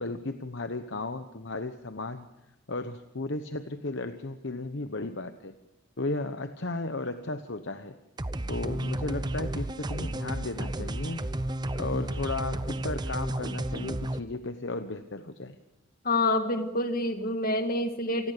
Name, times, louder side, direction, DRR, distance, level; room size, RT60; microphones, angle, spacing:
voice 1, 0.0-2.3 2.7-5.5 6.0-7.9 8.5-11.2 11.7-15.6, left 2 dB, 60° left, 9 dB, 1.0 m, -35 dB
sound 1, 8.2-14.2, right 1 dB, 20° right, 0.8 m, -32 dB
voice 2, 16.0-18.3, left 2 dB, 45° left, 6 dB, 2.1 m, -27 dB
28.5 x 19.5 x 6.8 m, 1.0 s
head